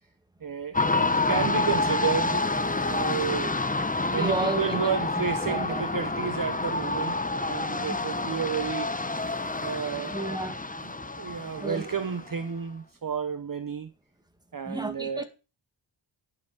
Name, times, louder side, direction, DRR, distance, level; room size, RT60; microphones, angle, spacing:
voice 1, 0.4-3.5 4.1-8.9 9.6-10.4 10.9-13.9 14.5-15.2, right 6 dB, 40° right, 0.9 m, -32 dB
sound 1, 0.7-12.4, left 2 dB, 15° left, 0.9 m, -28 dB
voice 2, 4.1-4.9 5.4-5.9 7.8-8.0 10.1-10.9 11.6-11.8 14.7-15.2, right 2 dB, 10° right, 1.9 m, -32 dB
11.0 x 6.9 x 4.8 m
cardioid pair, 65°, 50 cm